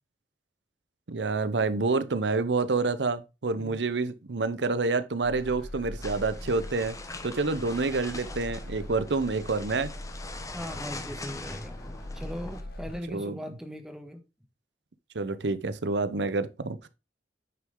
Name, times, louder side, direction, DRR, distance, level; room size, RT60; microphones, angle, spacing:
voice 1, 1.1-7.0 7.2-9.9 13.1-13.4 15.1-16.9, right 3 dB, 75° right, 0.8 m, -28 dB
voice 2, 3.5-3.9 10.5-11.8 12.1-14.2, equal, 5° right, 1.4 m, -39 dB
sound 1, 5.2-13.1, left 1 dB, 60° left, 1.6 m, -41 dB
sound 2, 6.0-12.6, left 2 dB, 20° left, 1.0 m, -42 dB
9.1 x 6.2 x 3.7 m
head